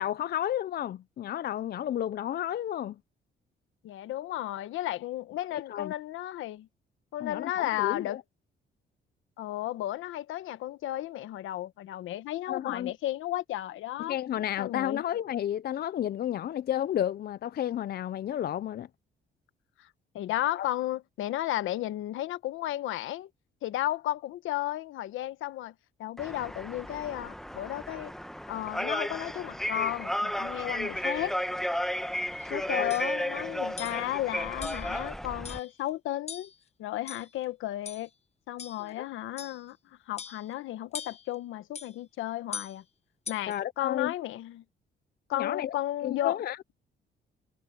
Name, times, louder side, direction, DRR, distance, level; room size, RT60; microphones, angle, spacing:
voice 1, 0.0-3.0 5.7-5.9 7.2-8.2 12.5-12.9 14.0-18.9 20.5-20.7 32.8-32.9 38.8-39.1 43.5-44.1 45.3-45.7 46.0-46.6, left 11 dB, 50° left, 0.5 m, -32 dB
voice 2, 3.8-6.7 7.1-8.2 9.4-14.2 14.6-15.0 19.8-19.9 20.1-23.3 23.6-25.7 26.0-28.1 28.5-31.4 32.5-36.5 36.8-38.1 38.5-39.8 40.1-42.8 43.3-44.6 45.3-46.4, left 14 dB, 85° left, 1.2 m, -33 dB
sound 1, 26.2-35.6, equal, ahead, 1.1 m, -33 dB
sound 2, 32.4-32.5 32.9-33.1 33.8-34.1 34.6-34.9 35.4-35.8 36.3-36.6 37.1-37.4 37.9-38.1 38.6-38.9 39.4-39.7 40.2-40.5 40.9-41.3 41.7-41.9 42.5-42.8 43.3-43.6, left 6 dB, 35° left, 1.2 m, -41 dB
cardioid pair, 90°, 20 cm